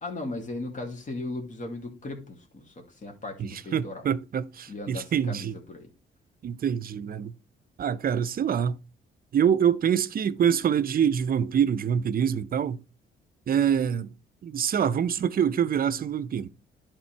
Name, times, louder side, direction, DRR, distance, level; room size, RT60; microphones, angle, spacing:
voice 1, 0.0-4.0 4.7-5.9, left 2 dB, 40° left, 2.2 m, -37 dB
voice 2, 3.4-5.6 6.4-7.3 7.8-8.8 9.3-12.8 13.5-14.1 14.4-16.5, right 8 dB, 45° right, 0.6 m, -25 dB
11.0 x 3.7 x 4.5 m
cardioid pair, 90°, 20 cm